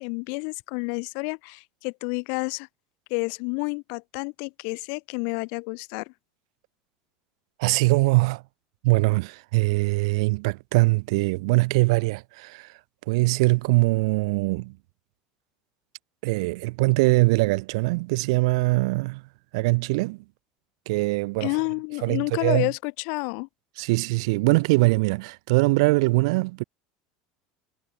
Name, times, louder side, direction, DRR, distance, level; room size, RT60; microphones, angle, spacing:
voice 1, 0.0-2.7 3.1-6.1 21.4-23.5, left 40 dB or more, 70° left, 4.4 m, -30 dB
voice 2, 7.6-8.4 8.8-12.7 13.1-14.8 16.2-19.2 19.5-20.2 20.9-21.5 22.0-22.7 23.8-26.6, right 24 dB, 80° right, 2.3 m, -22 dB
supercardioid pair, 105°, 3 cm